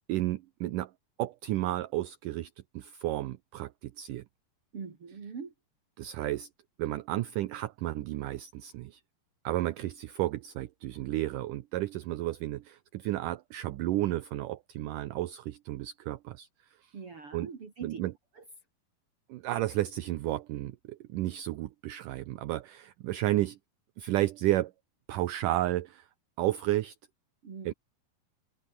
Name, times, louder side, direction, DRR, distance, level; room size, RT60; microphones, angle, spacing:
voice 1, 0.1-0.9 1.2-4.2 6.0-6.5 6.8-9.0 9.4-16.5 16.8-16.9 17.3-17.5 17.8-18.1 19.3-23.6 24.0-24.7 25.1-26.1 26.4-27.0 27.7-27.8, right 15 dB, 70° right, 2.2 m, -32 dB
voice 2, 4.7-5.5 16.9-18.0 18.3-18.4 27.4-27.7, right 5 dB, 40° right, 3.5 m, -43 dB
omnidirectional pair, 4.2 m